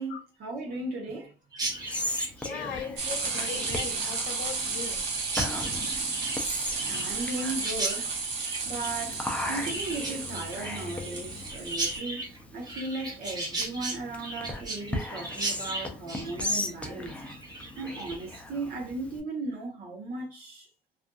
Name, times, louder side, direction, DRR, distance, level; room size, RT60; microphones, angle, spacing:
voice 1, 0.0-1.3 6.2-6.5 6.9-8.2 8.6-17.2 17.5-20.7, right 2 dB, 60° right, 0.9 m, -37 dB
Chirp tweet, 1.5-18.4, right 2 dB, 25° right, 0.9 m, -37 dB
Whispering, 1.6-19.2, left 1 dB, 5° left, 0.4 m, -38 dB
voice 2, 2.4-5.0, left 6 dB, 80° left, 0.6 m, -38 dB
sound 1, 3.0-12.0, right 4 dB, 85° right, 1.0 m, -33 dB
2.5 x 2.4 x 2.3 m
cardioid pair, 110°, 17 cm